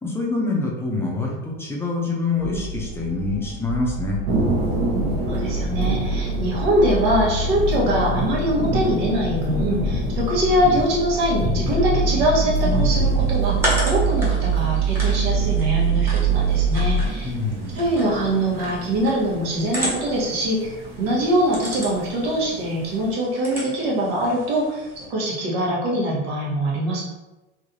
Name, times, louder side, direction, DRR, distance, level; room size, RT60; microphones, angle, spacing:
voice 1, 0.0-4.2 17.2-17.9, left 3 dB, 10° left, -3 dB, 0.6 m, -26 dB
sound 1, 2.4-17.1, right 3 dB, 85° left, 0.6 m, -24 dB
sound 2, 4.3-23.1, right 1 dB, 45° right, 0.8 m, -30 dB
voice 2, 5.3-17.3 17.7-27.0, right 1 dB, 80° right, -4 dB, 1.3 m, -23 dB
sound 3, 12.5-25.0, equal, 10° right, 0.9 m, -34 dB
3.2 x 2.8 x 2.6 m, 1.1 s
supercardioid pair, 135°, 30 cm